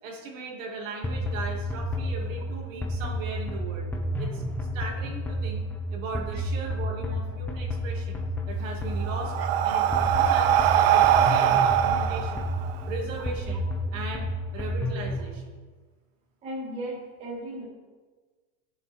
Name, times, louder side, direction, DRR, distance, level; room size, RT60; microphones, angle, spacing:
voice 1, 0.0-3.9 4.2-4.4 4.7-5.6 5.9-8.2 8.5-9.3 9.6-12.5 12.9-15.4, right 3 dB, 80° right, 0 dB, 2.7 m, -38 dB
sound 1, 1.0-15.3, equal, 5° left, 0.7 m, -31 dB
Breathing, 8.6-13.3, right 10 dB, 50° right, 0.6 m, -22 dB
voice 2, 16.4-17.6, right 1 dB, 15° right, -7 dB, 2.8 m, -36 dB
15.0 x 7.2 x 4.6 m, 1.4 s
supercardioid pair, 175°, 38 cm